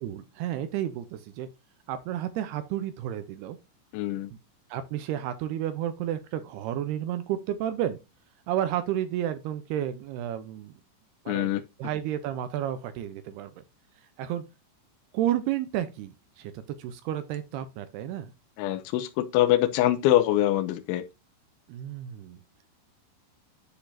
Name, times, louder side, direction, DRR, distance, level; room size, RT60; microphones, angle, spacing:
voice 1, 0.0-1.5 1.9-3.6 4.3-4.4 4.7-8.0 8.5-10.7 11.3-11.5 11.8-13.6 14.2-14.4 15.1-18.3 21.7-22.4, right 11 dB, 80° right, 2.3 m, -31 dB
voice 2, 3.9-4.3 11.3-11.6 18.6-21.0, left 13 dB, 85° left, 3.0 m, -24 dB
10.0 x 5.0 x 2.6 m
omnidirectional pair, 5.4 m